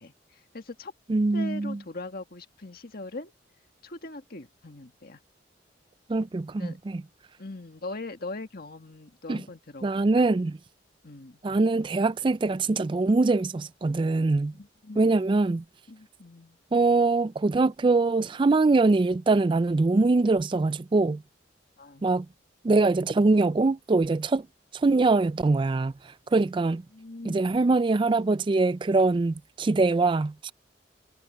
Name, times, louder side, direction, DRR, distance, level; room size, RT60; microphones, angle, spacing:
voice 1, 0.0-0.9 1.3-3.3 3.8-5.2 6.6-6.8 7.4-9.9 10.2-10.3 11.0-11.4 14.6-15.1 15.9-16.6 21.8-22.1 26.4-26.5 26.9-27.6, left 2 dB, 55° left, 1.8 m, -41 dB
voice 2, 1.1-1.8 6.1-7.0 9.3-9.4 9.8-10.6 11.4-14.5 15.0-15.6 16.7-21.2 22.0-22.3 22.6-24.5 24.7-25.9 26.3-26.8 27.2-30.5, right 3 dB, 25° right, 0.3 m, -23 dB
head